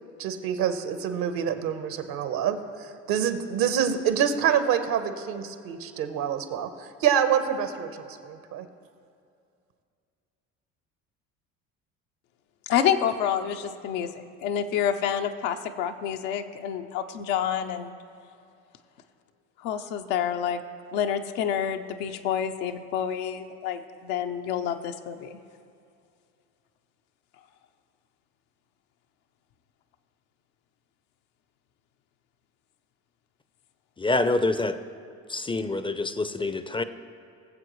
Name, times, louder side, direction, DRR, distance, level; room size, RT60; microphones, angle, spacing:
voice 1, 0.2-8.6, right 8 dB, 65° right, 9 dB, 1.1 m, -26 dB
voice 2, 12.7-14.1 14.4-17.9 19.6-20.6 20.9-25.4, left 9 dB, 75° left, 6 dB, 0.8 m, -28 dB
voice 3, 34.0-34.8 35.3-36.8, left 2 dB, 15° left, 11 dB, 0.5 m, -26 dB
20.0 x 7.6 x 3.1 m, 2.5 s
hypercardioid pair, 65°, 38 cm